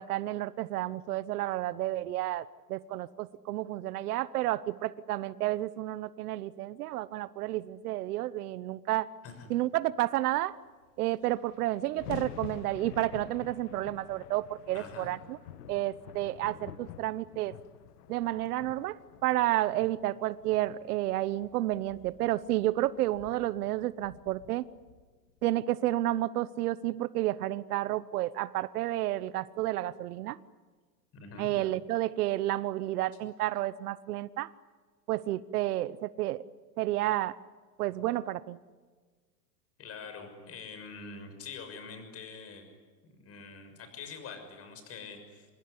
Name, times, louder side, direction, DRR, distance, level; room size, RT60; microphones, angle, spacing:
voice 1, 0.0-9.1 9.5-10.6 11.0-15.4 15.7-17.5 18.1-24.6 25.4-30.4 31.4-34.5 35.1-36.4 36.8-37.4 37.8-38.6, right 15 dB, 65° right, 18 dB, 0.9 m, -31 dB
sound 1, 10.8-10.9 11.1-25.5, left 11 dB, 65° left, 1.5 m, -49 dB
voice 2, 14.7-15.1 31.1-31.5 39.8-42.7 43.2-45.5, left 5 dB, 30° left, 7 dB, 6.3 m, -45 dB
26.5 x 21.0 x 9.9 m, 1.5 s
supercardioid pair, 140°, 49 cm